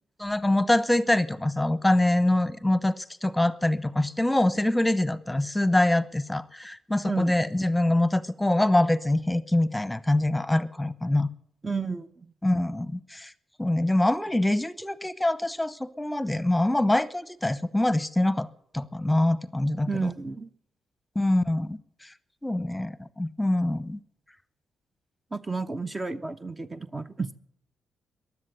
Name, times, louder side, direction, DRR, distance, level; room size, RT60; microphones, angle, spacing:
voice 1, 0.2-11.3 12.4-13.3 13.6-18.5 18.7-20.1 21.1-22.1 22.4-24.0, left 1 dB, 10° left, 15 dB, 1.0 m, -24 dB
voice 2, 11.6-12.3 19.9-20.5 25.3-27.3, right 4 dB, 30° right, 9 dB, 0.9 m, -31 dB
15.5 x 11.0 x 8.1 m, 0.72 s
hypercardioid pair, 45°, 0 cm